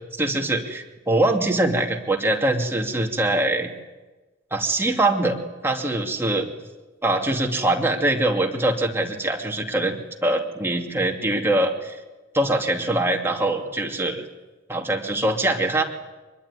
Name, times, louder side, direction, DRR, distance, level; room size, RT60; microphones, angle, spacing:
voice 1, 0.1-3.7 4.5-5.4 5.6-6.5 7.0-12.0 12.3-14.3 14.7-15.8, right 2 dB, 10° right, 1 dB, 2.6 m, -23 dB
24.5 x 22.0 x 9.9 m, 1.2 s
head